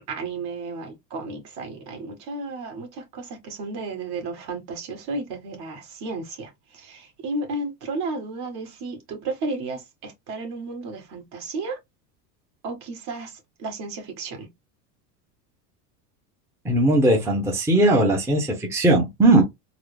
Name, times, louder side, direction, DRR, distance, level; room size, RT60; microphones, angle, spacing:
voice 1, 0.1-11.8 12.6-14.5, right 3 dB, 50° right, 1.8 m, -33 dB
voice 2, 16.6-19.4, right 1 dB, 5° right, 0.8 m, -19 dB
3.9 x 2.0 x 3.3 m
supercardioid pair, 120°, 49 cm